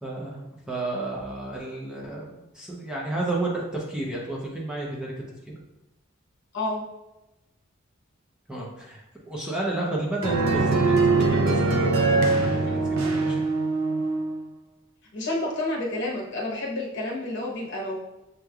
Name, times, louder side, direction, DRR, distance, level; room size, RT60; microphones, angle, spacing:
voice 1, 0.0-5.1 5.5-5.6 8.5-13.5, right 2 dB, 5° right, -4 dB, 0.6 m, -32 dB
sound 1, 10.2-14.4, right 3 dB, 90° right, 0.6 m, -22 dB
voice 2, 15.1-18.0, left 1 dB, 60° left, -3 dB, 1.0 m, -29 dB
6.5 x 3.1 x 2.3 m, 0.96 s
head